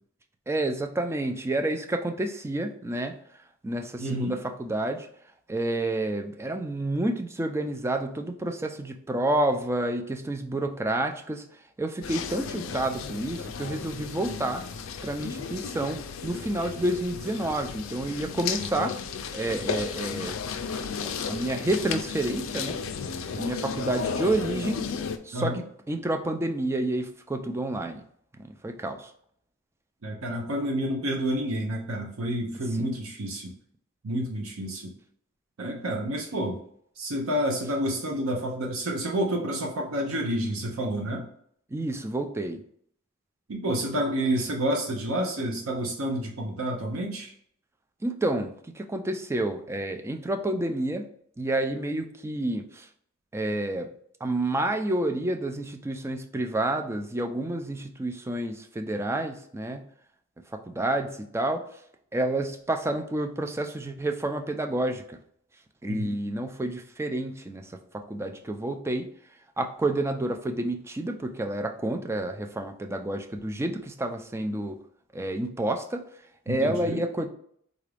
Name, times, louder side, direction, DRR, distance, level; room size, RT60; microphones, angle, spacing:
voice 1, 0.5-3.1 3.6-5.1 5.5-11.4 11.8-14.6 15.0-19.0 19.3-20.4 20.7-22.8 23.3-24.8 25.2-28.0 28.4-29.1 32.7-32.9 41.7-42.6 48.0-48.5 48.7-51.1 51.4-52.9 53.3-53.9 54.2-59.9 60.5-61.6 62.1-65.2 65.8-69.1 69.6-74.8 75.1-76.0 76.5-77.3, right 1 dB, 15° right, 5 dB, 0.3 m, -29 dB
voice 2, 4.0-4.3 25.3-25.6 30.0-33.5 34.0-34.9 35.6-36.6 37.0-41.3 43.5-47.3 65.9-66.1 76.5-77.0, right 1 dB, 80° right, 0 dB, 0.6 m, -29 dB
sound 1, 12.0-25.2, left 6 dB, 70° left, 0.4 m, -34 dB
3.8 x 2.5 x 3.3 m, 0.65 s
head